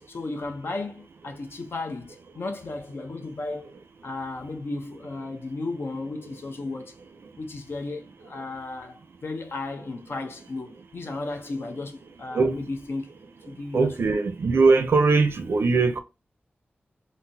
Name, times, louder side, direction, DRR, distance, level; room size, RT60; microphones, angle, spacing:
voice 1, 0.0-3.7 4.0-6.9 7.4-13.1 13.5-14.1, left 3 dB, 70° left, 0.7 m, -34 dB
voice 2, 13.7-16.0, right 4 dB, 80° right, 0.5 m, -20 dB
3.8 x 2.1 x 2.6 m
wide cardioid pair, 80°, 4 cm